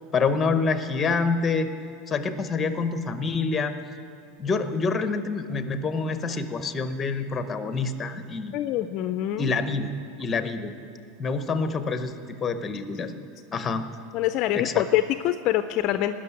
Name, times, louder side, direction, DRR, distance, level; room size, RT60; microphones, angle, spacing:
voice 1, 0.1-1.7 2.1-3.8 4.4-8.5 9.4-9.9 10.2-10.7 11.2-12.1 12.4-13.1 13.5-13.8 14.6-14.8, left 4 dB, 15° left, 9 dB, 0.8 m, -26 dB
voice 2, 8.5-9.5 14.1-16.2, left 13 dB, 40° left, 10 dB, 0.4 m, -25 dB
18.5 x 6.4 x 9.5 m, 2.5 s
supercardioid pair, 155°, 0 cm